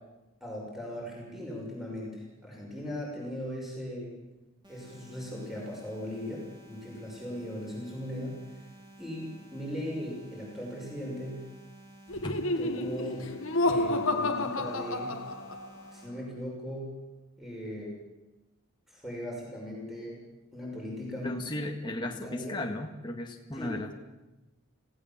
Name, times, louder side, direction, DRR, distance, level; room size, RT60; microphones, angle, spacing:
voice 1, 0.4-4.1 4.7-8.6 9.0-11.5 12.6-13.3 13.6-15.2 15.9-17.0 17.4-18.0 18.9-20.2 20.5-21.9 22.2-22.6 23.5-23.8, left 1 dB, ahead, -3 dB, 6.0 m, -38 dB
sound 1, 4.6-16.1, right 1 dB, 20° right, 4.0 m, -53 dB
Laughter, 12.1-15.8, left 2 dB, 70° left, 1.6 m, -30 dB
voice 2, 21.2-23.9, left 1 dB, 20° left, 1 dB, 1.7 m, -35 dB
27.0 x 16.5 x 7.3 m, 1.0 s
head